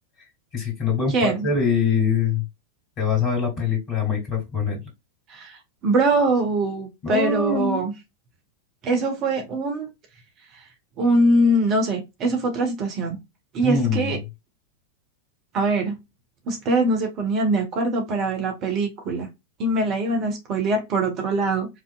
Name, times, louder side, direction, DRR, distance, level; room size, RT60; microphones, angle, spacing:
voice 1, 0.5-2.4 3.0-4.8 7.0-7.8 13.6-14.2, left 5 dB, 35° left, 3.1 m, -23 dB
voice 2, 1.1-1.5 5.3-5.6 5.8-7.9 8.8-9.9 11.0-13.2 13.5-14.2 15.5-16.0 16.5-19.3 19.6-21.7, right 2 dB, 35° right, 1.5 m, -22 dB
4.9 x 3.6 x 2.5 m
figure-of-eight pair, 90°, 0 cm